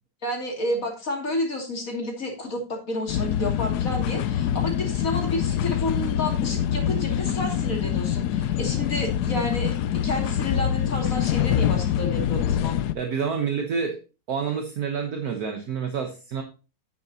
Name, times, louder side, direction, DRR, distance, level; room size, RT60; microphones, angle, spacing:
voice 1, 0.2-12.8, left 1 dB, 45° left, 1 dB, 3.1 m, -30 dB
sound 1, 3.1-12.9, left 10 dB, 70° left, 1.1 m, -25 dB
voice 2, 12.9-14.0 14.3-16.4, right 6 dB, 55° right, 4 dB, 1.5 m, -28 dB
10.5 x 9.0 x 2.9 m, 0.32 s
omnidirectional pair, 2.0 m